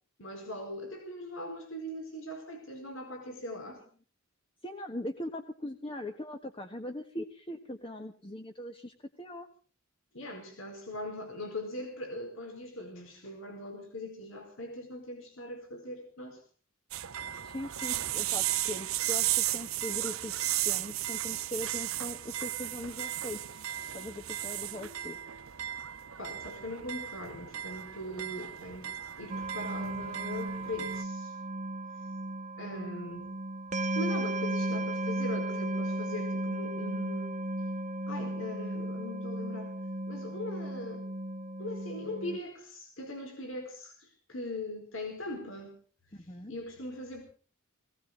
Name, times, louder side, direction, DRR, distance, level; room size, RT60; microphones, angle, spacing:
voice 1, 0.2-3.8 10.1-16.4 26.2-31.3 32.6-33.3 33.9-37.4 38.1-39.8 40.1-41.0 41.6-45.8 46.2-47.2, left 1 dB, 65° left, 5 dB, 4.7 m, -40 dB
voice 2, 4.6-9.5 17.4-20.3 20.6-23.4 23.9-25.2 46.1-46.5, left 1 dB, 25° left, 5 dB, 1.4 m, -40 dB
sound 1, 16.9-31.0, right 13 dB, 80° right, 0.8 m, -35 dB
sound 2, 29.3-42.4, right 1 dB, 35° right, 0.9 m, -35 dB
19.5 x 18.5 x 3.9 m, 0.40 s
head